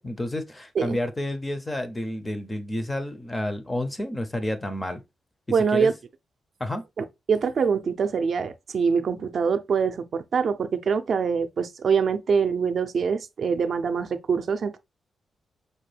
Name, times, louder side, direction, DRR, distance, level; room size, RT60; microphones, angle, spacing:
voice 1, 0.0-5.0 5.6-5.9 6.6-6.8, left 1 dB, 15° left, 0.5 m, -30 dB
voice 2, 5.5-5.9 7.0-14.8, right 6 dB, 55° right, 0.4 m, -24 dB
5.1 x 2.2 x 3.2 m
wide cardioid pair, 135°, 0 cm